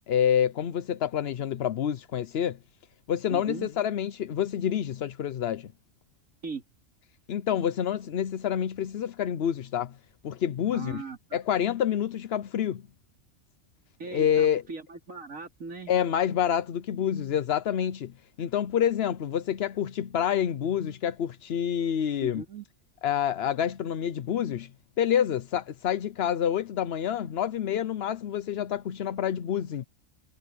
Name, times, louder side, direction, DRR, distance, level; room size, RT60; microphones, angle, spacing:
voice 1, 0.1-2.6 3.1-5.7 7.3-9.9 10.2-11.0 11.3-12.8 14.1-14.6 15.9-18.1 18.4-22.4 23.0-24.7 25.0-29.8, left 9 dB, 55° left, 0.8 m, -27 dB
voice 2, 3.3-3.7 6.4-6.6 10.7-11.4 14.0-15.9 22.2-22.7, right 4 dB, 70° right, 3.7 m, -39 dB
omnidirectional pair, 1.4 m